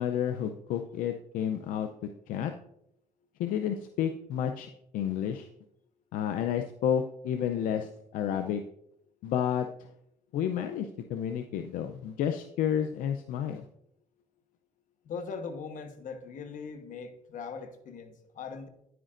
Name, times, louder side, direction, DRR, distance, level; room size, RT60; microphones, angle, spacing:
voice 1, 0.0-1.9 2.3-2.5 3.4-5.5 6.1-8.6 9.2-9.7 10.3-13.6, left 9 dB, 90° left, 6 dB, 0.5 m, -31 dB
voice 2, 15.1-18.7, left 5 dB, 70° left, 7 dB, 1.2 m, -40 dB
9.8 x 9.3 x 2.5 m, 0.76 s
cardioid pair, 85°, 14 cm